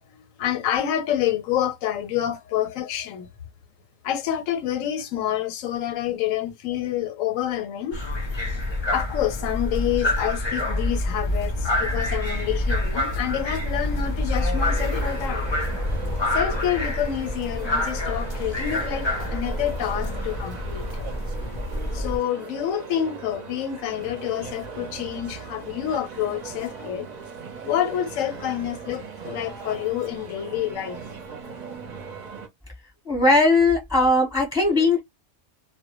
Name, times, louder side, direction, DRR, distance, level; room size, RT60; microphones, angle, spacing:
voice 1, 0.4-3.3 4.0-8.0 8.5-15.4 16.3-21.1 21.9-27.1 27.6-31.0, left 10 dB, 85° left, 1.0 m, -28 dB
sound 1, 7.9-22.2, left 1 dB, 40° left, 0.4 m, -27 dB
sound 2, 14.5-32.5, right 5 dB, 45° right, 0.6 m, -39 dB
voice 2, 33.0-35.0, left 2 dB, 5° right, 0.8 m, -19 dB
2.1 x 2.1 x 2.8 m
omnidirectional pair, 1.3 m